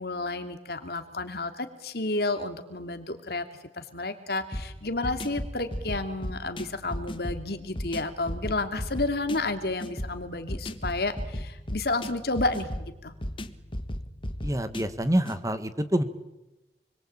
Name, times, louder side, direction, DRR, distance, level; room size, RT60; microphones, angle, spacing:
voice 1, 0.0-3.4 3.7-12.7 13.0-13.1, left 2 dB, 60° left, 8 dB, 2.8 m, -31 dB
sound 1, 4.5-15.4, equal, 30° left, 1.4 m, -36 dB
voice 2, 14.4-16.0, right 1 dB, 20° right, 10 dB, 1.8 m, -26 dB
29.0 x 22.5 x 8.9 m, 0.97 s
head